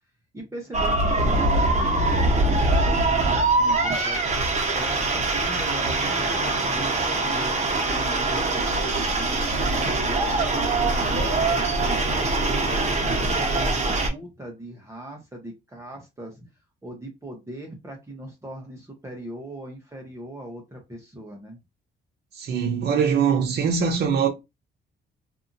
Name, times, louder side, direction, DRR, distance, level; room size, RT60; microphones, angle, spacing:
voice 1, 0.3-4.3 4.8-16.4 16.8-21.6, right 1 dB, 15° right, 0.9 m, -39 dB
sound 1, 0.7-14.1, right 2 dB, 35° right, 1.1 m, -23 dB
voice 2, 22.3-24.3, right 6 dB, 55° right, 0.7 m, -22 dB
2.7 x 2.4 x 2.6 m
cardioid pair, 90°, 20 cm